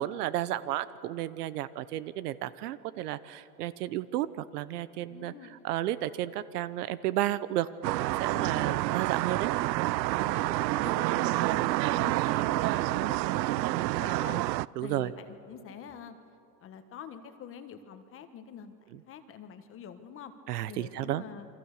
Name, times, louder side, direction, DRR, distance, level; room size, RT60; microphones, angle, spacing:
voice 1, 0.0-5.3 5.6-9.5 14.8-15.1 20.5-21.2, right 14 dB, 70° right, 15 dB, 1.1 m, -32 dB
voice 2, 5.1-5.5 8.3-8.9 10.2-16.2 16.6-20.3 20.6-21.5, left 7 dB, 25° left, 9 dB, 1.3 m, -46 dB
sound 1, 7.8-14.6, right 18 dB, 90° right, 0.6 m, -28 dB
28.5 x 24.0 x 6.7 m, 2.6 s
supercardioid pair, 145°, 49 cm